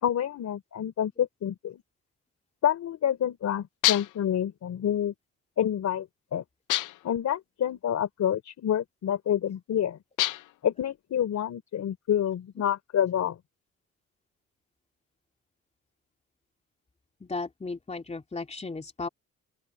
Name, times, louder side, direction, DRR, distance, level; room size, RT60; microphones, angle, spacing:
voice 1, 0.0-1.8 2.6-5.1 5.6-6.4 7.0-10.0 10.6-13.4, left 10 dB, 65° left, 3.5 m, -28 dB
sound 1, 3.8-4.3 6.7-7.2 10.2-10.6, left 17 dB, 85° left, 0.7 m, -27 dB
voice 2, 17.2-19.1, left 3 dB, 20° left, 3.1 m, -35 dB
open air
cardioid pair, 90°, 30 cm